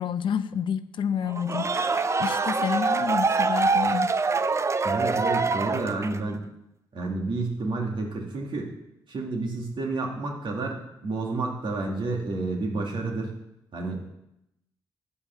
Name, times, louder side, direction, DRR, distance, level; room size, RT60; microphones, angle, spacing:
voice 1, 0.0-4.1, left 8 dB, 60° left, 13 dB, 0.6 m, -29 dB
sound 1, 1.3-6.3, right 4 dB, 30° right, 0.5 m, -25 dB
voice 2, 4.8-6.4 6.9-8.7 9.1-13.3 13.7-14.1, right 3 dB, 60° right, 0 dB, 2.3 m, -30 dB
8.8 x 4.8 x 7.6 m, 0.84 s
supercardioid pair, 50°, 10 cm